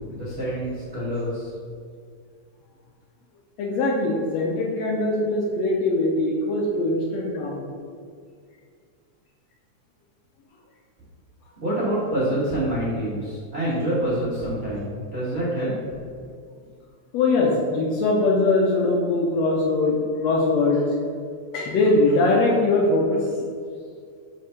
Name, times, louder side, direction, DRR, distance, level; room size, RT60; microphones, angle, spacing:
voice 1, 0.0-1.5 11.6-15.8, right 1 dB, 50° right, -11 dB, 0.8 m, -26 dB
voice 2, 3.6-7.6 17.1-20.9 21.5-23.2, left 2 dB, 75° left, -2 dB, 1.6 m, -21 dB
5.0 x 3.4 x 5.5 m, 2.2 s
omnidirectional pair, 3.5 m